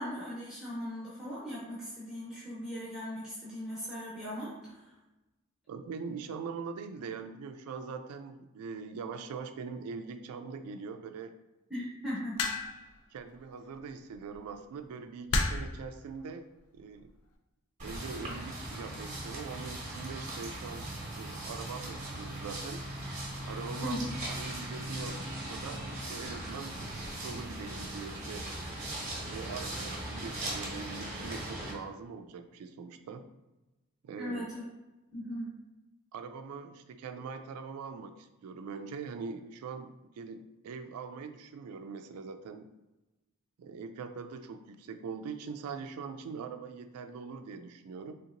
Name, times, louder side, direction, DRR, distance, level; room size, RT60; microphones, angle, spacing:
voice 1, 0.0-4.9 11.7-12.4 23.8-24.1 34.2-34.6 35.1-35.5, equal, ahead, -10 dB, 0.8 m, -38 dB
voice 2, 5.7-11.3 13.1-16.5 16.7-17.1 17.8-22.8 23.5-25.2 25.5-28.5 29.3-33.2 34.0-34.5 36.1-42.7 43.6-48.1, right 5 dB, 85° right, 10 dB, 0.3 m, -42 dB
sound 1, 12.4-12.9 14.1-14.4 15.3-15.8 16.8-17.1, left 3 dB, 80° left, 0.4 m, -30 dB
sound 2, 17.8-31.7, right 1 dB, 30° right, 0.8 m, -39 dB
3.5 x 2.8 x 2.5 m, 1.0 s
head